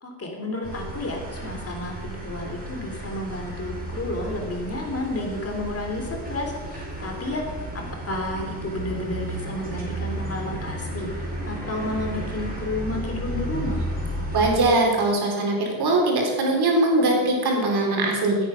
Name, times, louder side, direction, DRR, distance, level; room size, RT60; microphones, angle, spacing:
voice 1, 0.0-11.1 11.5-13.8, left 2 dB, 30° left, 2 dB, 3.2 m, -31 dB
sound 1, 0.6-14.6, right 1 dB, 20° right, 5.1 m, -33 dB
voice 2, 14.3-18.4, right 2 dB, 55° right, 0 dB, 4.2 m, -21 dB
16.0 x 9.0 x 5.8 m, 1.4 s
cardioid pair, 105°, 47 cm